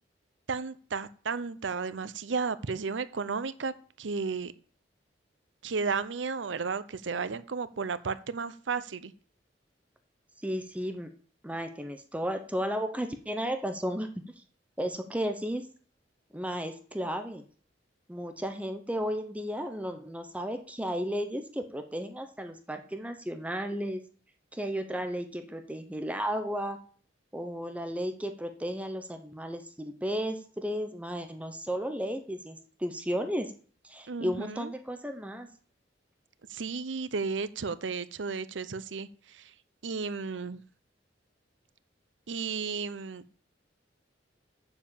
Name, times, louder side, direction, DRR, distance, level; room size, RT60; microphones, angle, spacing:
voice 1, 0.5-3.7 4.0-4.5 5.6-9.1 34.1-34.7 36.5-39.5 39.8-40.6 42.3-43.2, right 5 dB, 90° right, 14 dB, 0.7 m, -33 dB
voice 2, 10.4-11.1 11.4-14.1 14.8-15.6 16.3-17.4 18.1-24.0 24.5-26.8 27.3-33.5 33.8-35.5, equal, 10° right, 6 dB, 0.9 m, -34 dB
7.4 x 7.0 x 7.2 m, 0.44 s
head